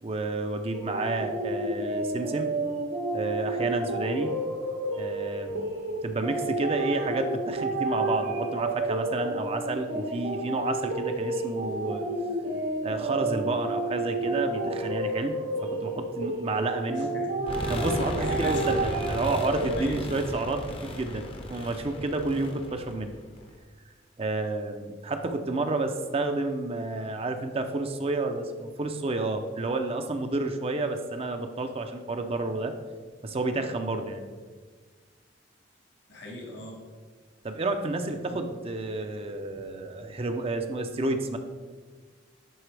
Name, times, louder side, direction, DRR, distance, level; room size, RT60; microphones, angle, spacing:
voice 1, 0.0-2.5 3.1-4.3 5.0-5.6 6.0-12.1 12.8-17.1 17.7-23.2 24.2-32.7 33.2-34.2 37.4-41.4, right 2 dB, 30° right, 6 dB, 0.5 m, -30 dB
sound 1, 0.7-19.8, right 2 dB, 80° right, 1.4 m, -31 dB
voice 2, 0.9-1.2 16.9-17.5 18.2-18.8 19.7-20.2 36.1-36.8 38.3-38.4, left 1 dB, 65° left, -1 dB, 1.6 m, -40 dB
sound 2, 17.5-23.6, left 1 dB, 30° left, 0.7 m, -36 dB
10.5 x 4.0 x 3.3 m, 1.5 s
head